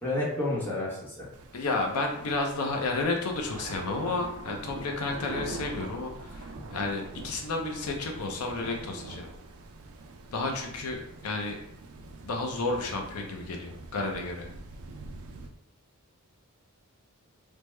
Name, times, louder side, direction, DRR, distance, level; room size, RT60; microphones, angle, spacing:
voice 1, 0.0-1.3, left 2 dB, 10° left, -7 dB, 0.9 m, -30 dB
sound 1, 1.3-15.5, right 3 dB, 70° right, 0.4 m, -44 dB
voice 2, 1.5-9.3 10.3-11.6 12.2-14.5, left 3 dB, 80° left, 2 dB, 0.5 m, -31 dB
3.4 x 2.0 x 3.1 m, 0.76 s
head